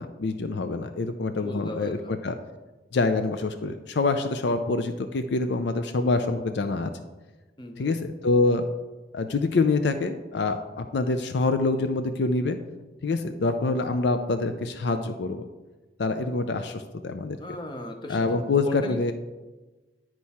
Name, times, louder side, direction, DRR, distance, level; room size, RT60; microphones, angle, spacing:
voice 1, 0.0-2.3 2.9-6.9 7.8-8.6 9.1-12.6 13.0-15.4 16.0-17.4 18.1-19.1, left 3 dB, 60° left, 8 dB, 0.4 m, -26 dB
voice 2, 1.4-2.3 7.6-7.9 17.4-18.3 18.6-19.1, left 1 dB, 25° left, 5 dB, 0.7 m, -38 dB
10.0 x 4.6 x 4.2 m, 1.2 s
head